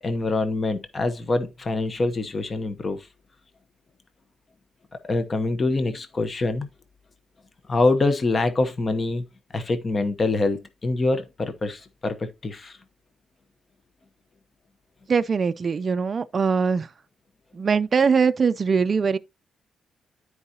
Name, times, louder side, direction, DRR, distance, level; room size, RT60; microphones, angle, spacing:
voice 1, 0.0-3.1 5.1-6.7 7.7-9.2 9.5-12.8, left 2 dB, 25° left, 0.9 m, -25 dB
voice 2, 15.1-16.9 17.6-19.2, right 5 dB, 35° right, 0.4 m, -22 dB
13.0 x 4.7 x 2.8 m
cardioid pair, 150°, 0 cm